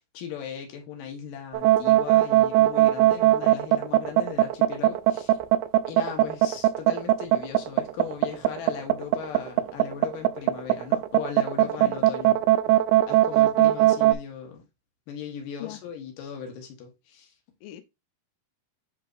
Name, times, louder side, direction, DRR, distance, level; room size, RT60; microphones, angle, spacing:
voice 1, 0.0-5.4 5.8-12.8 13.1-14.6 15.1-17.3, left 8 dB, 65° left, 2.6 m, -38 dB
sound 1, 1.5-14.1, right 15 dB, 85° right, 2.4 m, -19 dB
voice 2, 11.6-12.0 13.6-13.7 15.6-15.8 17.6-17.8, left 16 dB, 90° left, 1.9 m, -39 dB
10.5 x 3.7 x 2.5 m
omnidirectional pair, 4.7 m